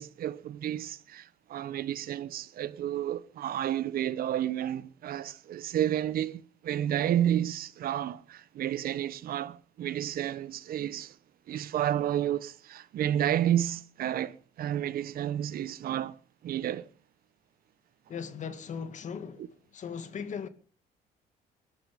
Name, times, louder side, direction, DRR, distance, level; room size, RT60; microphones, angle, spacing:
voice 1, 0.0-11.1 11.5-16.1 16.4-16.9 19.4-19.5, right 11 dB, 60° right, 1.1 m, -31 dB
voice 2, 18.1-19.4 19.7-20.5, left 6 dB, 45° left, 2.1 m, -38 dB
21.0 x 12.0 x 5.3 m
cardioid pair, 110°, 17 cm